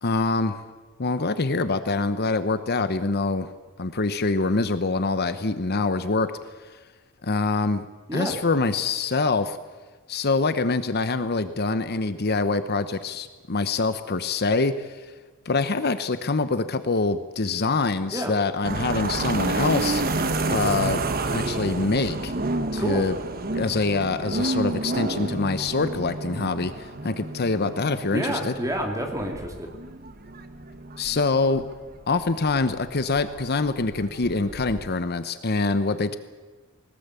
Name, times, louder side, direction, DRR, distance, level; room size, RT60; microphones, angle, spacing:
voice 1, 0.0-0.6 1.0-3.5 3.8-6.3 7.2-7.9 8.1-9.6 10.1-15.1 15.4-20.0 20.5-21.0 21.3-22.3 22.7-23.1 23.5-28.5 31.0-31.6 32.1-36.2, left 3 dB, 50° left, 11 dB, 1.0 m, -25 dB
sound 1, 18.6-34.9, right 2 dB, 45° right, 1.3 m, -30 dB
voice 2, 22.8-23.1 28.1-29.7, equal, 15° right, 2 dB, 3.2 m, -29 dB
20.5 x 19.0 x 8.3 m, 1.3 s
head